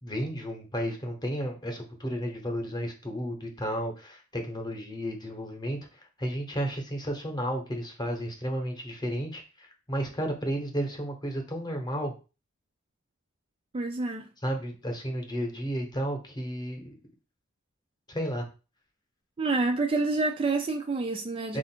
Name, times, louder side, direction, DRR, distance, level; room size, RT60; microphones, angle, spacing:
voice 1, 0.0-12.1 14.4-16.9 18.1-18.5 21.5-21.6, equal, 20° left, 0.9 m, -33 dB
voice 2, 13.7-14.3 19.4-21.6, right 3 dB, 25° right, 0.3 m, -28 dB
4.2 x 2.5 x 4.3 m
head